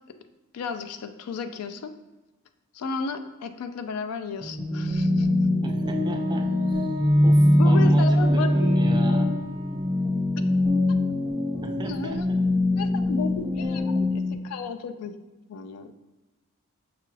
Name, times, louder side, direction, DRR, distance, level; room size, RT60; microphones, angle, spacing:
voice 1, 0.5-1.9 2.7-5.3 7.6-9.0 11.8-12.3 12.8-15.1 15.5-15.9, left 4 dB, 80° left, 9 dB, 0.4 m, -33 dB
sound 1, 4.4-14.3, left 1 dB, ahead, 0.8 m, -22 dB
voice 2, 5.6-6.9 7.2-9.3 11.6-12.5, right 2 dB, 20° right, 4 dB, 0.3 m, -36 dB
Wind instrument woodwind instrument, 6.0-10.6, left 1 dB, 60° left, 0.9 m, -42 dB
5.8 x 2.3 x 3.1 m, 1.1 s
head